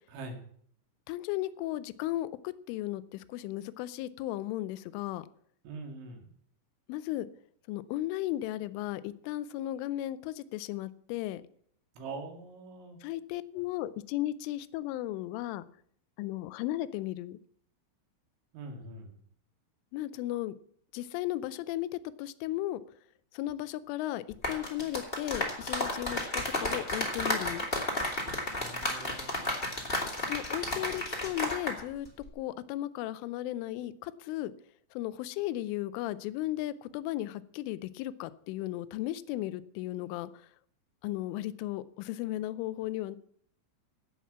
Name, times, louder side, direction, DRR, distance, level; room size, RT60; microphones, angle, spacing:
voice 1, 1.1-5.3 6.9-7.3 7.7-11.4 13.0-15.6 16.2-17.4 19.9-20.5 20.9-22.8 23.3-27.7 30.2-32.1 32.3-34.5 34.9-40.5 41.0-43.2, left 15 dB, 85° left, 15 dB, 3.1 m, -35 dB
voice 2, 5.6-6.3 12.0-13.0 18.5-19.1 28.5-29.8, right 3 dB, 75° right, 3 dB, 4.5 m, -44 dB
sound 1, 24.3-31.8 32.0-32.3, left 1 dB, 25° left, 1.3 m, -32 dB
16.5 x 5.9 x 7.3 m, 0.62 s
omnidirectional pair, 5.6 m